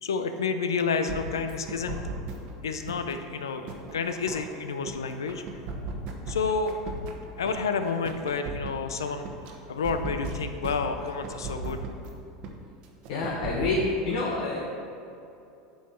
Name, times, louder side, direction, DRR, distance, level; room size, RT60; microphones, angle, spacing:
voice 1, 0.0-2.0 2.6-5.6 6.3-6.8 7.4-9.3 9.7-11.8, left 5 dB, 90° left, 8 dB, 0.5 m, -30 dB
sound 1, 1.1-2.5 2.9-4.9 5.3-7.5 7.9-9.5 9.8-12.1 12.4-12.5 12.8-13.8, right 3 dB, 60° right, 1.0 m, -36 dB
voice 2, 13.1-13.8 14.0-14.6, left 3 dB, 70° left, -3 dB, 1.1 m, -28 dB
8.3 x 5.6 x 4.3 m, 2.7 s
hypercardioid pair, 90°, 2 cm